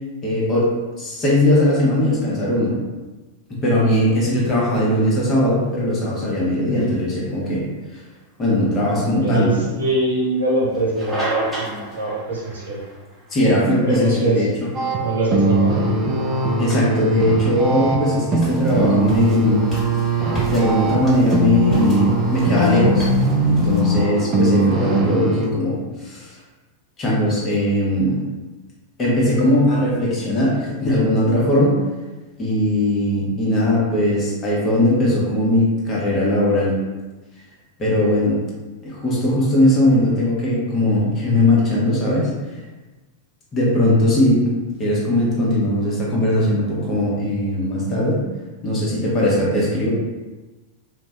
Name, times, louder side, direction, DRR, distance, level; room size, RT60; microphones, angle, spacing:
voice 1, 0.2-2.7 3.6-7.7 8.4-9.5 13.3-14.5 16.6-19.6 20.5-23.1 23.5-26.3 27.0-28.2 29.0-31.7 32.4-36.7 37.8-38.4 38.8-42.3 43.5-48.2 48.6-49.9, left 1 dB, 30° left, -6 dB, 1.0 m, -19 dB
sound 1, 3.9-19.0, right 1 dB, 5° right, 0.8 m, -37 dB
voice 2, 9.2-12.8 13.8-14.5 15.0-15.8, right 2 dB, 80° right, -6 dB, 1.0 m, -22 dB
sound 2, 14.7-25.5, right 1 dB, 35° right, 0.3 m, -20 dB
sound 3, 18.4-23.8, left 2 dB, 10° left, 1.4 m, -38 dB
2.5 x 2.2 x 2.2 m, 1.2 s
figure-of-eight pair, 95°, 0 cm